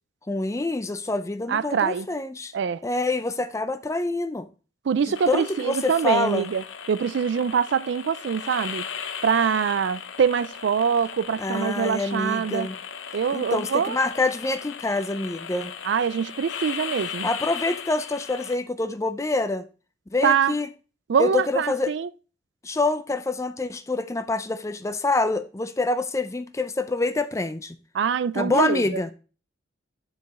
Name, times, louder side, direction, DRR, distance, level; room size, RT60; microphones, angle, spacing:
voice 1, 0.3-2.5 2.8-4.5 5.3-6.5 11.4-12.8 13.3-15.7 17.2-19.7 20.1-20.7 21.2-21.9 22.6-27.8 28.3-29.1, left 2 dB, 15° left, 0.4 m, -26 dB
voice 2, 1.5-2.1 2.5-2.8 4.9-8.8 9.2-12.7 13.1-14.0 15.8-17.3 20.2-20.5 21.1-22.1 27.9-29.0, right 7 dB, 65° right, 0.3 m, -24 dB
sound 1, 5.1-18.5, left 7 dB, 85° left, 0.7 m, -37 dB
9.1 x 4.8 x 3.1 m
head